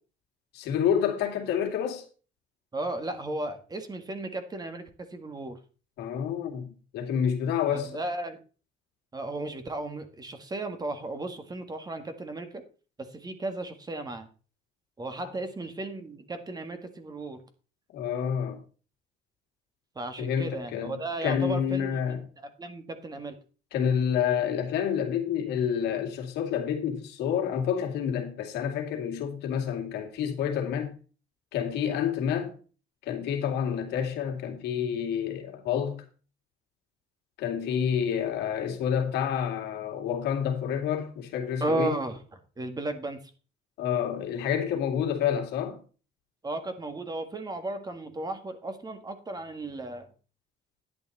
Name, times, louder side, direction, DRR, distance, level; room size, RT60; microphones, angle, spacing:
voice 1, 0.5-2.1 6.0-6.7 6.9-8.0 15.2-15.3 17.9-18.6 20.2-22.2 23.7-30.9 31.5-32.5 33.0-36.0 37.4-41.9 43.8-45.8, left 8 dB, 85° left, 2.3 m, -28 dB
voice 2, 2.7-5.6 7.7-8.4 9.1-12.6 13.0-14.3 15.0-17.4 19.9-22.0 22.4-23.4 41.6-42.2 42.6-43.2 46.4-50.1, right 2 dB, 25° right, 1.7 m, -34 dB
10.5 x 8.8 x 4.1 m
cardioid pair, 110°, 17 cm